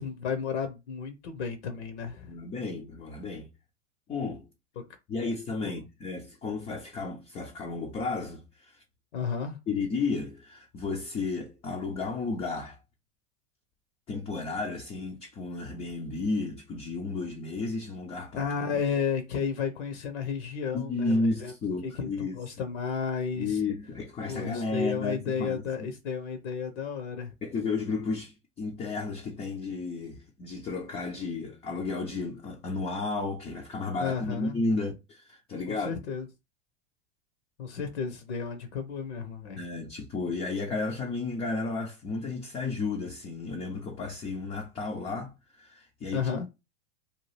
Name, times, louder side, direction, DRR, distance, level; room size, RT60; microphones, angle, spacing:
voice 1, 0.0-2.3 4.8-4.9 5.6-5.8 9.1-9.6 18.4-21.5 21.8-23.6 24.3-27.3 34.0-34.6 35.7-36.3 37.6-39.6 46.1-46.5, left 6 dB, 65° left, 0.7 m, -32 dB
voice 2, 2.3-3.5 4.1-4.5 5.1-8.8 9.7-12.8 14.1-18.5 20.7-22.4 23.4-25.9 27.4-36.0 39.6-46.5, left 3 dB, 15° left, 0.3 m, -33 dB
2.7 x 2.3 x 3.1 m
hypercardioid pair, 105°, 37 cm